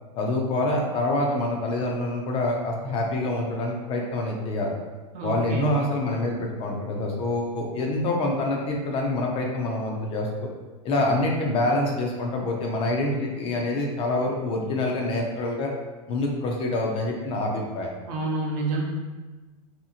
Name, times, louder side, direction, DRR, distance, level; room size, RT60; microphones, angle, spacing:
voice 1, 0.2-4.7 5.2-10.5 10.8-15.7 16.1-17.9, left 2 dB, 30° left, 0 dB, 0.5 m, -26 dB
voice 2, 5.1-5.9 18.1-18.8, right 2 dB, 45° right, -1 dB, 0.6 m, -28 dB
2.9 x 2.5 x 2.4 m, 1.2 s
supercardioid pair, 130°, 18 cm